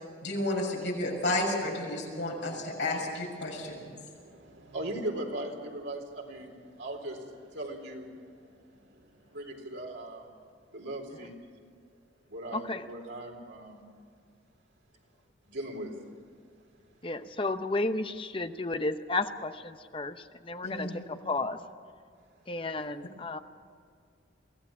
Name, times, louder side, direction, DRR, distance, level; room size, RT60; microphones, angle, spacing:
voice 1, 0.2-3.9 20.6-21.0, left 1 dB, 65° left, -2 dB, 6.6 m, -31 dB
voice 2, 3.5-10.3 10.7-11.4 12.3-13.9 15.5-15.9, right 1 dB, 80° right, 1 dB, 4.0 m, -40 dB
voice 3, 12.5-12.9 17.0-21.6 22.5-23.4, left 2 dB, 30° left, 9 dB, 0.8 m, -33 dB
23.5 x 16.0 x 7.2 m, 2.3 s
head